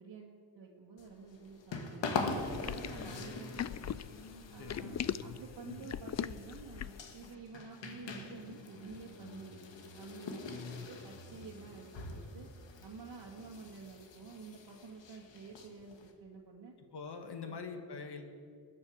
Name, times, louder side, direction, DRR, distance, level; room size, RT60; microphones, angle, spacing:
voice 1, 0.0-2.1 2.6-4.0 4.5-9.6 10.0-12.5 12.8-16.7 17.5-17.6, right 5 dB, 70° right, -3 dB, 2.0 m, -50 dB
sound 1, 1.0-16.1, left 3 dB, 85° left, 1.9 m, -44 dB
sound 2, 2.4-7.1, left 9 dB, 40° left, 0.5 m, -39 dB
voice 2, 2.8-3.2 4.6-5.8 10.4-10.9 16.9-18.2, left 5 dB, 65° left, 6 dB, 1.7 m, -45 dB
19.5 x 9.7 x 6.5 m, 2.3 s
cardioid pair, 85°, 43 cm